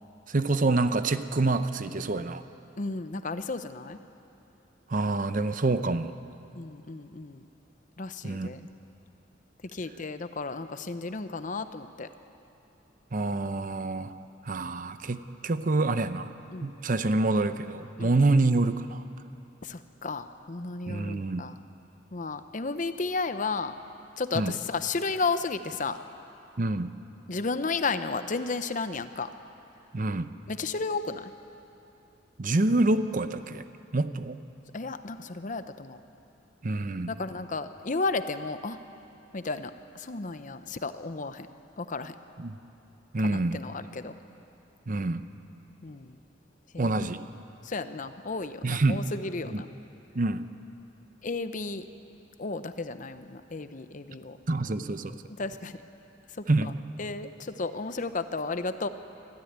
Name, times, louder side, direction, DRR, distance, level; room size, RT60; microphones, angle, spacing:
voice 1, 0.3-2.4 4.9-6.2 8.2-8.5 13.1-14.1 14.4-16.3 16.6-19.0 20.9-21.4 24.3-24.5 26.6-26.9 29.9-30.3 32.4-33.6 33.9-34.4 36.6-37.1 42.4-42.6 43.1-43.6 44.9-45.3 46.8-47.2 48.6-49.1 49.5-49.6 50.1-50.5 54.5-55.2 56.5-56.7, right 2 dB, 45° right, 11 dB, 0.7 m, -27 dB
voice 2, 2.8-4.0 6.5-7.5 8.0-8.6 9.7-12.1 16.5-16.7 18.0-18.1 19.6-21.6 22.1-23.7 24.2-26.0 27.3-29.3 30.5-31.3 34.7-36.0 37.1-38.8 39.3-41.5 41.8-42.2 43.2-44.1 45.8-46.2 46.7-47.1 47.6-49.7 51.2-51.8 52.4-54.4 55.4-55.8 56.3-56.4 57.0-58.9, left 3 dB, 45° left, 11 dB, 0.8 m, -33 dB
24.5 x 13.5 x 9.5 m, 2.9 s
head